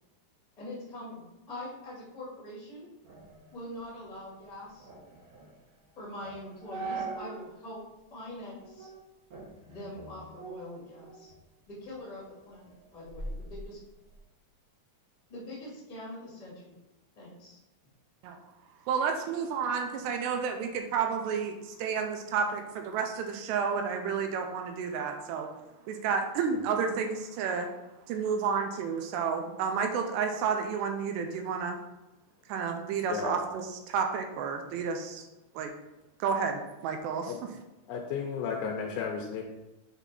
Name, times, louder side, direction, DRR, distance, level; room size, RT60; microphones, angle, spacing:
voice 1, 0.6-2.9 3.5-4.9 5.9-7.8 8.1-8.9 9.7-11.3 11.7-13.8 15.3-16.7 17.1-17.6, left 1 dB, 25° left, -6 dB, 0.8 m, -43 dB
sound 1, 3.0-7.5 7.9-8.0 8.6-9.0 9.3-11.4 11.8-14.2, right 3 dB, 60° right, 1.6 m, -43 dB
voice 2, 18.9-25.5 25.9-27.7 28.1-31.8 32.5-35.2 35.6-35.7 36.2-37.3, right 6 dB, 85° right, 5 dB, 2.5 m, -31 dB
voice 3, 33.1-33.4 37.3-37.4 37.9-39.4, left 6 dB, 85° left, 0 dB, 3.0 m, -33 dB
8.2 x 3.6 x 4.1 m, 1.0 s
omnidirectional pair, 5.4 m